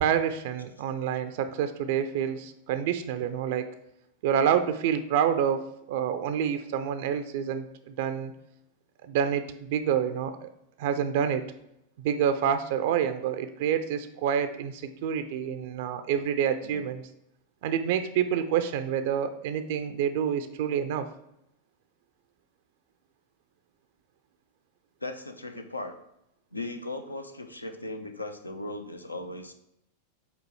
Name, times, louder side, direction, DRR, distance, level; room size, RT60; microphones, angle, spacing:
voice 1, 0.0-3.7 4.2-8.3 9.0-10.5 10.8-11.5 12.0-17.0 17.6-21.1, right 8 dB, 50° right, 9 dB, 0.4 m, -28 dB
voice 2, 25.0-25.9 26.5-29.5, left 2 dB, 85° left, 6 dB, 0.6 m, -37 dB
5.2 x 3.9 x 4.6 m, 0.81 s
figure-of-eight pair, 90°, 0 cm